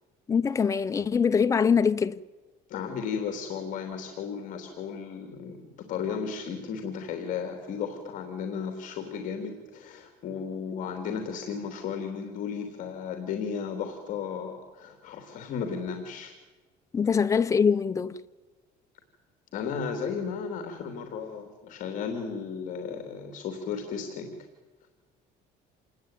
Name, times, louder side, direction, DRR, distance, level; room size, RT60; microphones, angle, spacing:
voice 1, 0.3-2.2 16.9-18.2, left 6 dB, 20° left, 0.8 m, -23 dB
voice 2, 2.7-16.3 19.5-24.4, left 6 dB, 50° left, 3.4 m, -34 dB
27.5 x 20.0 x 9.3 m
cardioid pair, 165°, 17 cm